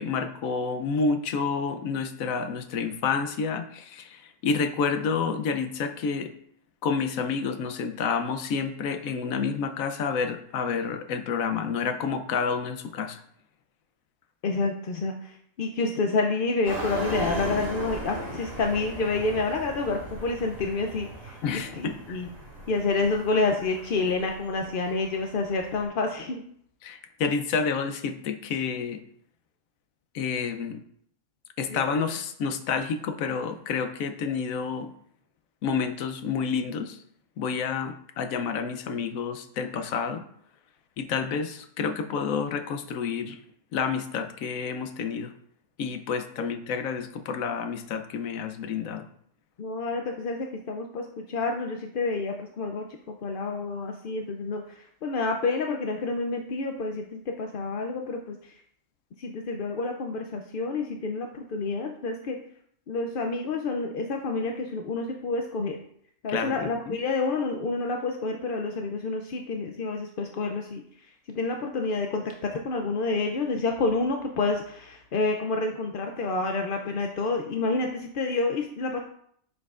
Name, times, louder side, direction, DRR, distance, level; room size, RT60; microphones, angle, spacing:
voice 1, 0.0-6.3 6.8-13.2 21.4-22.2 26.8-29.0 30.1-30.8 31.6-34.9 35.6-37.0 37.4-40.2 41.0-43.4 43.7-45.3 45.8-49.1 66.3-67.0, left 5 dB, 80° left, 8 dB, 1.1 m, -29 dB
voice 2, 14.4-22.3 22.7-26.4 31.7-32.0 46.4-46.5 49.6-52.9 53.2-58.5 59.2-62.4 62.9-65.8 66.2-70.8 71.3-79.0, left 3 dB, 55° left, 3 dB, 0.6 m, -29 dB
sound 1, 16.6-25.9, equal, 70° right, 3.0 m, -37 dB
7.1 x 6.3 x 2.4 m, 0.66 s
omnidirectional pair, 1.4 m